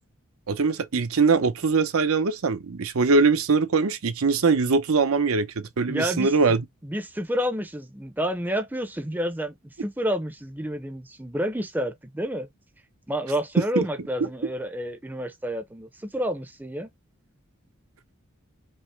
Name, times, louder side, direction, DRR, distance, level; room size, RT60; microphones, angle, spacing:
voice 1, 0.5-6.6 13.8-13.9, right 4 dB, 80° right, 0.6 m, -22 dB
voice 2, 5.9-6.3 6.8-12.5 13.1-16.9, equal, 10° right, 0.5 m, -29 dB
5.4 x 2.0 x 3.2 m
head